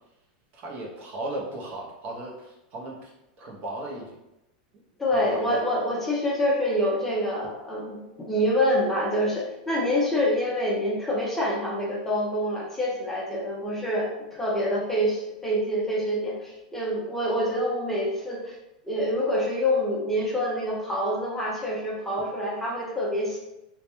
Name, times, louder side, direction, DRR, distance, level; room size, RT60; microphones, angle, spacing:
voice 1, 0.5-3.1 3.4-4.2 5.1-5.7, right 1 dB, 40° right, -2 dB, 0.6 m, -36 dB
voice 2, 5.0-8.0 8.3-18.6 18.8-23.4, equal, 5° left, -4 dB, 0.5 m, -26 dB
2.2 x 2.1 x 2.9 m, 0.92 s
supercardioid pair, 135°, 4 cm